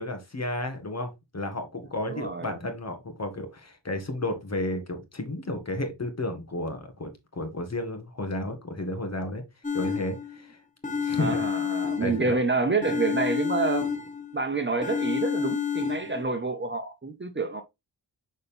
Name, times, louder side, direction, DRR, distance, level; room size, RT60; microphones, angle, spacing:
voice 1, 0.0-9.4 9.7-10.6 11.0-11.4 12.0-12.4, left 1 dB, 35° left, 1.9 m, -32 dB
voice 2, 2.1-2.6 11.1-13.9 14.3-17.6, right 3 dB, 25° right, 1.1 m, -28 dB
sound 1, 9.6-10.4 10.8-12.4 12.8-14.4 14.8-16.2, left 7 dB, 20° left, 1.2 m, -29 dB
6.6 x 4.1 x 3.4 m
cardioid pair, 65°, 43 cm